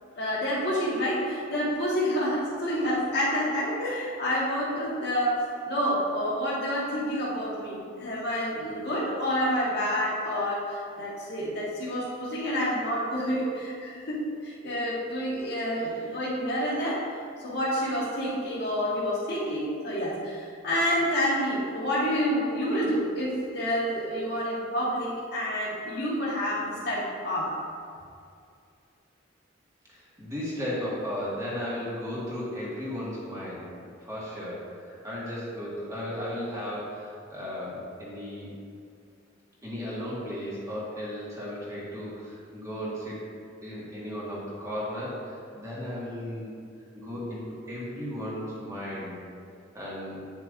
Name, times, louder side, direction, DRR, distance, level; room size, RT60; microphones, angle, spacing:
voice 1, 0.2-17.0 17.4-27.5, equal, 55° left, -8 dB, 1.6 m, -28 dB
voice 2, 29.9-33.7 34.0-38.5 39.6-43.2 43.6-46.5 46.9-49.2 49.7-50.2, equal, 15° right, -7 dB, 1.9 m, -35 dB
8.9 x 7.4 x 2.6 m, 2.4 s
head